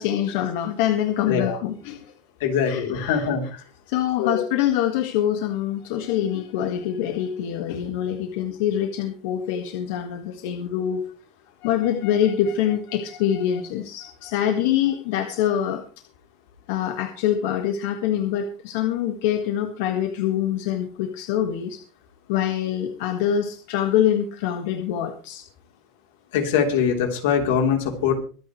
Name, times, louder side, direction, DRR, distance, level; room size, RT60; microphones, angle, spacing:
voice 1, 0.0-2.0 2.7-3.3 3.9-11.0 11.6-15.8 16.7-21.8 22.3-25.4, left 10 dB, 65° left, 5 dB, 1.8 m, -25 dB
voice 2, 1.3-1.6 2.4-3.5 4.2-4.5 26.3-28.1, left 7 dB, 80° left, 4 dB, 3.6 m, -22 dB
24.5 x 9.2 x 3.3 m, 0.39 s
supercardioid pair, 175°, 0 cm